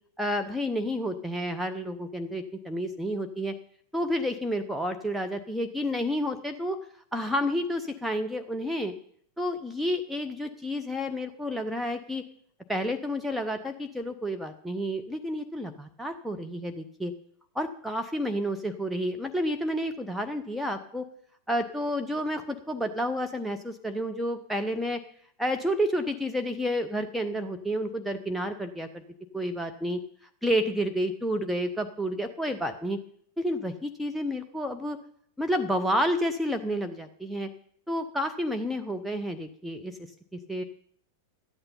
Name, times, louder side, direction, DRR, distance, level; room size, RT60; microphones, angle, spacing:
voice 1, 0.2-3.5 3.9-6.8 7.1-8.9 9.4-12.2 12.7-17.1 17.5-21.1 21.5-25.0 25.4-29.0 29.3-30.0 30.4-33.0 33.4-35.0 35.4-37.5 37.9-40.0 40.3-40.6, equal, ahead, 4 dB, 0.7 m, -30 dB
12.5 x 8.9 x 5.5 m, 0.62 s
figure-of-eight pair, 90°, 0 cm